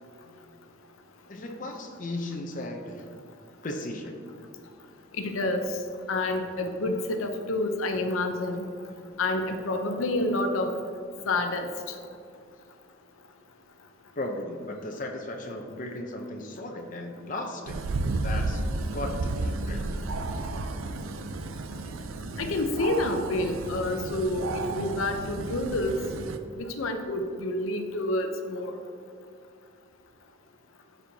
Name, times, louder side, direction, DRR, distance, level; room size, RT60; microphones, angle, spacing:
voice 1, 1.3-3.1 3.6-4.2 14.1-17.8 18.2-18.6 18.9-20.0, left 1 dB, 40° left, 2 dB, 0.6 m, -36 dB
voice 2, 5.1-5.8 6.1-8.6 9.2-10.7 11.3-12.0 22.4-26.0 26.6-28.8, left 2 dB, 80° left, 5 dB, 0.6 m, -28 dB
sound 1, 17.7-26.4, right 2 dB, 80° right, 0.4 m, -32 dB
12.0 x 4.4 x 2.7 m, 2.3 s
head